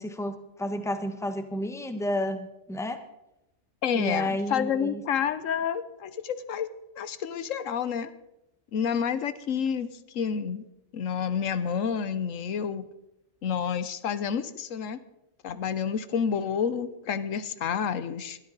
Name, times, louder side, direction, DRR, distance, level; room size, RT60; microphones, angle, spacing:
voice 1, 0.0-3.0 3.9-5.0, left 1 dB, ahead, 8 dB, 1.0 m, -31 dB
voice 2, 3.8-6.7 7.0-8.1 8.7-9.9 10.1-10.6 10.9-12.8 13.4-15.0 15.4-18.4, left 7 dB, 85° left, 13 dB, 1.2 m, -29 dB
21.5 x 12.5 x 4.0 m, 0.90 s
omnidirectional pair, 1.3 m